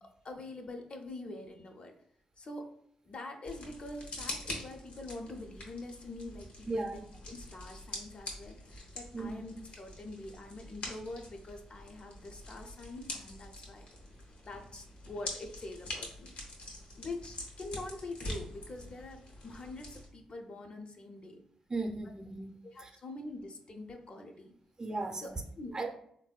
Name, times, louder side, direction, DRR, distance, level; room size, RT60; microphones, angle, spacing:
voice 1, 0.0-1.9 2.4-2.7 3.0-7.0 7.3-13.9 14.4-16.4 17.0-21.4 22.6-24.5 25.2-25.9, left 2 dB, 50° left, 3 dB, 0.5 m, -45 dB
sound 1, 3.4-20.1, left 2 dB, 75° left, 0.8 m, -45 dB
voice 2, 6.7-7.0 9.1-9.3 21.7-22.5 22.8-22.9 24.8-25.4 25.7-25.9, right 3 dB, 35° right, 3 dB, 0.6 m, -36 dB
3.4 x 2.6 x 2.2 m, 0.69 s
supercardioid pair, 55°, 2 cm